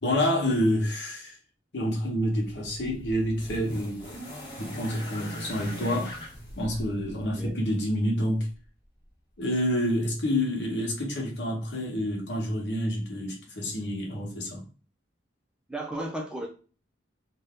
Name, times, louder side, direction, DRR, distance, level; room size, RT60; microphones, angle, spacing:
voice 1, 0.0-1.4 1.7-4.0 4.6-6.2 6.6-8.5 9.4-14.7, equal, 60° left, 1.0 m, -28 dB
sound 1, 2.4-7.6 8.6-8.7, equal, 25° left, 1.0 m, -41 dB
voice 2, 7.1-7.5 15.7-16.5, right 1 dB, 5° right, 0.4 m, -35 dB
2.7 x 2.3 x 3.5 m
head